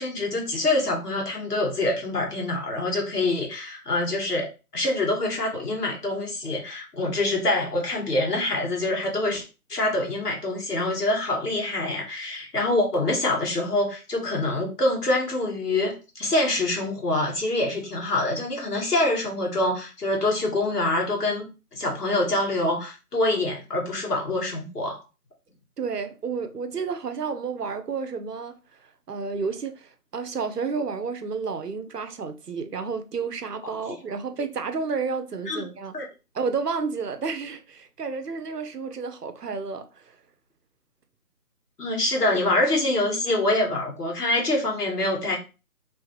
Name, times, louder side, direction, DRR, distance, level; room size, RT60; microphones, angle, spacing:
voice 1, 0.0-4.5 4.7-9.4 9.7-25.0 35.5-35.6 35.9-36.1 41.8-45.4, left 2 dB, 80° left, 2.0 m, -25 dB
voice 2, 25.8-28.6 29.1-36.0 36.3-40.0, right 5 dB, 85° right, 0.9 m, -31 dB
3.4 x 3.4 x 3.1 m
figure-of-eight pair, 170°, 46 cm